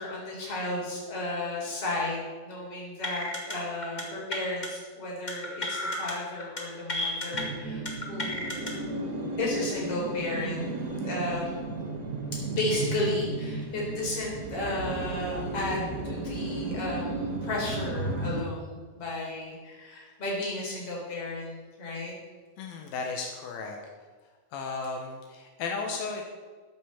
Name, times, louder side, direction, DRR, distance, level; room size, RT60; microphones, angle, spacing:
voice 1, 0.0-10.7 11.0-11.6 12.3-22.1, left 2 dB, 40° left, -3 dB, 4.8 m, -33 dB
sound 1, 3.0-3.5 3.8-4.0 4.3-4.7 5.3-6.1 6.4-6.6 6.9-7.4 7.8-8.7, left 1 dB, 20° left, 1.3 m, -33 dB
sound 2, 7.3-18.4, right 3 dB, 65° right, 0.8 m, -34 dB
voice 2, 22.6-23.8 24.5-26.3, left 4 dB, 85° left, 2 dB, 3.0 m, -34 dB
13.0 x 8.4 x 7.5 m, 1.4 s
omnidirectional pair, 4.1 m